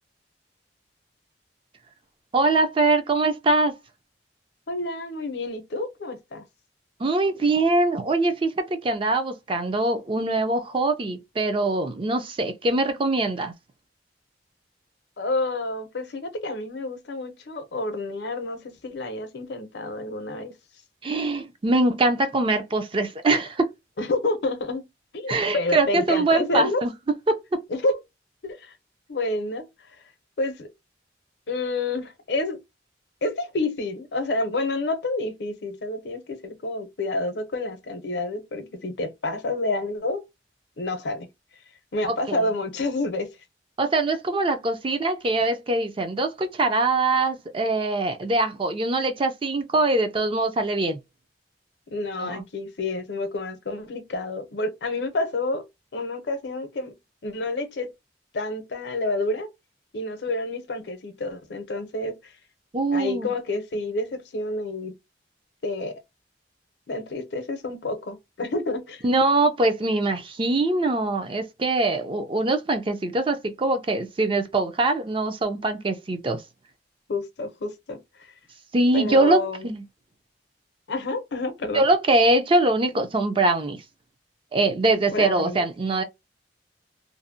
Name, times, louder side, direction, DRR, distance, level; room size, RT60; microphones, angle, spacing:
voice 1, 2.3-3.7 7.0-13.5 21.0-23.7 25.3-26.9 27.3-27.4 42.1-42.4 43.8-51.0 52.2-52.4 62.7-63.3 69.0-76.4 78.7-79.8 81.7-83.8 84.5-86.0, right 2 dB, 30° right, 0.4 m, -23 dB
voice 2, 4.7-6.4 15.2-20.5 24.0-24.9 25.1-26.8 27.7-28.0 28.4-28.7 29.1-29.6 30.4-30.7 31.5-32.6 33.2-40.2 40.8-41.3 41.9-43.3 51.9-55.6 55.9-56.9 57.2-57.9 58.3-59.5 59.9-62.3 62.9-64.9 65.6-66.0 66.9-69.0 77.1-78.3 78.9-79.7 80.9-81.9 85.1-85.6, left 2 dB, 70° left, 0.7 m, -29 dB
2.6 x 2.0 x 2.5 m
head